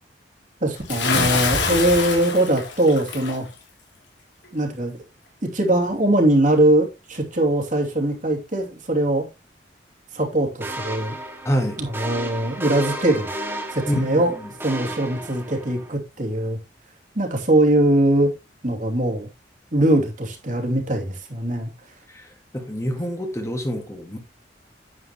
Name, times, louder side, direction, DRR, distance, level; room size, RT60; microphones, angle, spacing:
voice 1, 0.6-3.4 4.5-5.0 5.4-9.2 10.1-11.1 11.8-13.3 13.7-14.3 14.6-16.6 17.1-18.3 18.6-19.3 19.7-21.7, right 1 dB, 45° right, 2.8 m, -21 dB
Bathtub (filling or washing) / Splash splatter, 0.9-3.4, left 4 dB, 85° left, 3.0 m, -25 dB
sound 1, 10.6-15.9, right 1 dB, 15° right, 2.0 m, -33 dB
voice 2, 11.4-11.8 13.9-14.2 22.1-22.3 22.5-24.2, equal, 15° left, 1.6 m, -26 dB
9.9 x 8.1 x 3.0 m
head